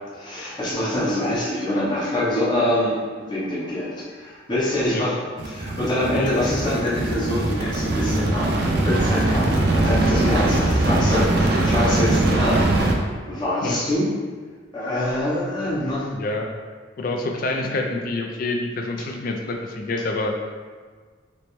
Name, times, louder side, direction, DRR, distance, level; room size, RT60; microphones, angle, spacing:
voice 1, 0.1-8.5 8.8-12.8 13.3-14.1 14.7-16.1, left 1 dB, 25° left, -8 dB, 0.8 m, -25 dB
sound 1, 5.4-12.9, right 2 dB, 55° right, 0.5 m, -21 dB
voice 2, 16.1-16.5 17.0-20.4, left 2 dB, 45° left, 3 dB, 0.4 m, -27 dB
3.2 x 3.0 x 3.0 m, 1.5 s
head